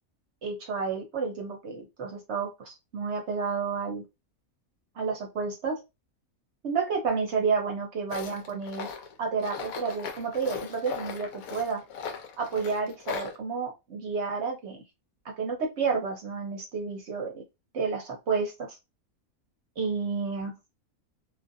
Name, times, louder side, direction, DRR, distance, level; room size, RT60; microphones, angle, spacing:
voice 1, 0.4-4.0 5.0-5.8 6.6-8.9 9.2-11.8 12.4-14.8 15.2-17.4 17.7-18.8 19.8-20.5, right 5 dB, 60° right, 2 dB, 0.8 m, -30 dB
Tools, 8.1-13.4, left 6 dB, 80° left, 1.1 m, -38 dB
2.5 x 2.5 x 2.5 m, 0.24 s
omnidirectional pair, 1.5 m